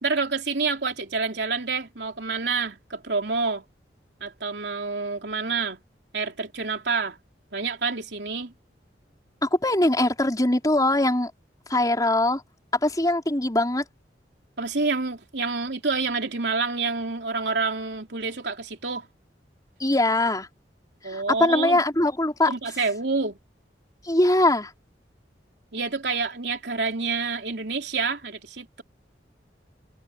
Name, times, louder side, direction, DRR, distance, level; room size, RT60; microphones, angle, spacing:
voice 1, 0.0-3.6 4.2-5.8 6.1-7.2 7.5-8.5 14.6-19.1 21.0-21.8 22.5-23.4 25.7-28.8, right 4 dB, 75° right, 3.4 m, -28 dB
voice 2, 9.4-11.3 11.7-12.4 12.8-13.8 19.8-20.5 21.0-22.5 24.0-24.7, left 1 dB, 20° left, 4.3 m, -22 dB
head